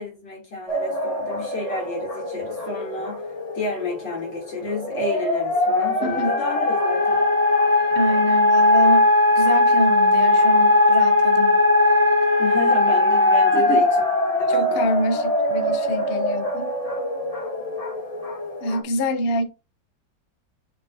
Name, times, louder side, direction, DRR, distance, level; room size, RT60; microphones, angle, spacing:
voice 1, 0.0-3.3 3.5-7.2 12.4-14.9, left 3 dB, 70° left, 3.7 m, -31 dB
sound 1, 0.7-18.8, left 1 dB, 20° left, 1.5 m, -20 dB
voice 2, 7.9-9.1 9.3-11.6 13.5-13.8 14.5-16.7 18.6-19.4, left 1 dB, 50° left, 0.7 m, -26 dB
7.0 x 5.4 x 2.7 m
omnidirectional pair, 2.1 m